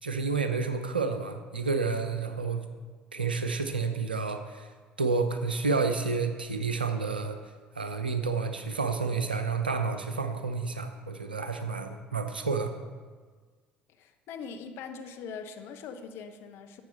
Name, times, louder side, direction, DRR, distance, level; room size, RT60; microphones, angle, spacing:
voice 1, 0.0-2.6 3.1-4.7 5.0-7.4 7.7-12.7, right 4 dB, 85° right, 8 dB, 0.7 m, -30 dB
voice 2, 14.0-16.8, left 6 dB, 50° left, 7 dB, 1.0 m, -42 dB
12.0 x 8.0 x 5.6 m, 1.5 s
figure-of-eight pair, 60°, 5 cm